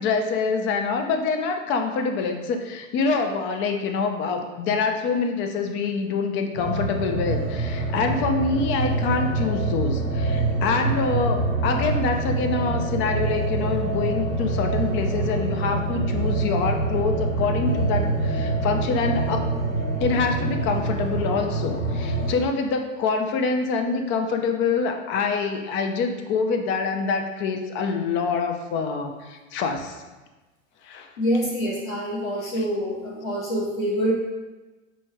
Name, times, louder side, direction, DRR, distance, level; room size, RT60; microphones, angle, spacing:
voice 1, 0.0-19.5 20.0-30.0 30.8-31.1 32.5-32.6, left 4 dB, 30° left, 5 dB, 0.5 m, -25 dB
sound 1, 6.5-22.3, right 2 dB, 65° left, 1.2 m, -25 dB
voice 2, 31.2-34.1, equal, 80° left, -4 dB, 1.3 m, -26 dB
6.3 x 3.2 x 2.3 m, 1.2 s
figure-of-eight pair, 90°, 40 cm